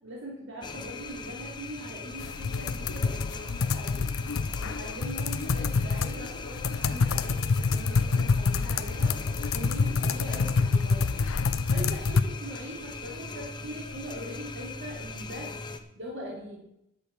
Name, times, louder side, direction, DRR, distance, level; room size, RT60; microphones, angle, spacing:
voice 1, 0.0-4.1 4.6-9.1 9.5-11.2 11.7-15.5 15.9-16.6, right 1 dB, 65° right, -3 dB, 3.1 m, -41 dB
sound 1, 0.6-15.8, left 4 dB, 20° left, 0.9 m, -40 dB
sound 2, 2.2-12.2, left 4 dB, 90° left, 0.6 m, -27 dB
11.0 x 6.5 x 8.3 m, 0.79 s
head